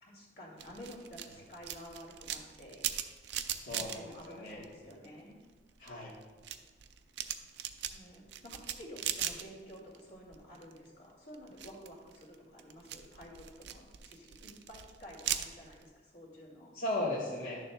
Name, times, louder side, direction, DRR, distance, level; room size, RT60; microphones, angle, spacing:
voice 1, 0.0-2.9 3.7-5.4 7.9-16.8, equal, 65° left, -3 dB, 2.1 m, -51 dB
sound 1, 0.6-5.2 5.5-10.0 10.3-10.9 11.3-15.8, right 10 dB, 80° right, 0.4 m, -40 dB
voice 2, 3.6-4.6 5.8-6.1 16.7-17.6, left 1 dB, 80° left, -7 dB, 1.4 m, -36 dB
11.5 x 6.7 x 2.2 m, 1.4 s
head